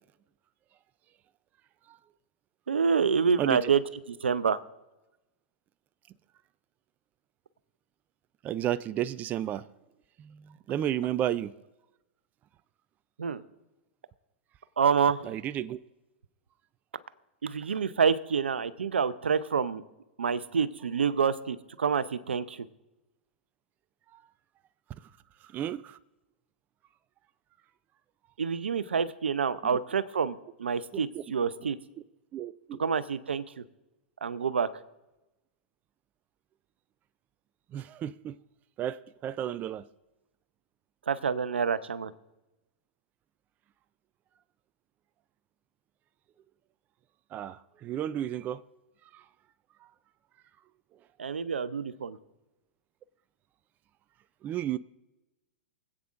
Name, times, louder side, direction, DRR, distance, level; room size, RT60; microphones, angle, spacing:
voice 1, 2.7-3.8 4.1-4.6 13.2-13.4 14.8-15.3 17.4-19.8 20.2-22.6 28.4-31.8 32.8-33.6 34.2-34.8 41.1-42.1 51.2-52.2, right 6 dB, 85° right, 0.7 m, -27 dB
voice 2, 3.4-3.7 8.4-9.7 10.2-11.5 15.2-15.8 25.5-26.0 29.6-29.8 31.1-31.2 32.3-32.8 37.7-38.4 38.8-39.8 47.3-48.6 49.1-49.2 54.4-54.8, right 11 dB, 30° right, 0.4 m, -32 dB
24.5 x 8.6 x 2.5 m
hypercardioid pair, 110°, 6 cm